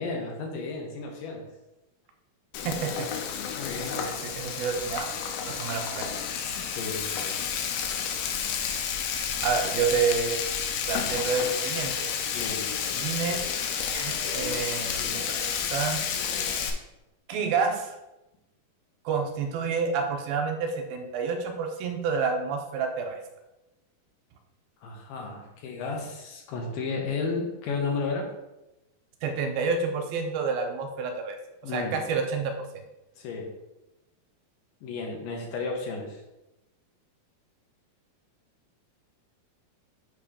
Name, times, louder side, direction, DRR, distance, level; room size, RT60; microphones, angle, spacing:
voice 1, 0.0-1.4 3.5-4.0 6.5-7.4 12.3-13.0 24.8-28.3 31.6-32.0 33.2-33.5 34.8-36.2, left 4 dB, 75° left, 1 dB, 2.4 m, -33 dB
Frying (food), 2.5-16.7, left 7 dB, 90° left, 2.6 m, -31 dB
voice 2, 2.7-3.1 3.8-5.1 5.4-6.1 9.4-10.4 10.9-12.1 12.9-13.4 13.9-16.0 17.3-18.0 19.1-23.2 29.2-31.4 31.7-32.5, right 5 dB, 85° right, 4 dB, 2.5 m, -29 dB
8.7 x 3.0 x 5.0 m, 0.96 s
omnidirectional pair, 4.3 m